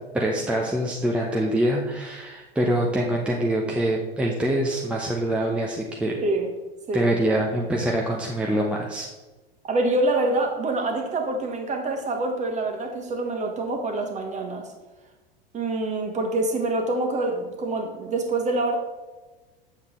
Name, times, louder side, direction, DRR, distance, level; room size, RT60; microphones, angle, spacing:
voice 1, 0.1-6.2 6.9-9.1, right 1 dB, 5° right, -2 dB, 0.8 m, -25 dB
voice 2, 9.6-14.7 15.5-18.8, right 2 dB, 25° right, 3 dB, 1.5 m, -26 dB
8.1 x 7.2 x 3.7 m, 1.2 s
figure-of-eight pair, 85°, 29 cm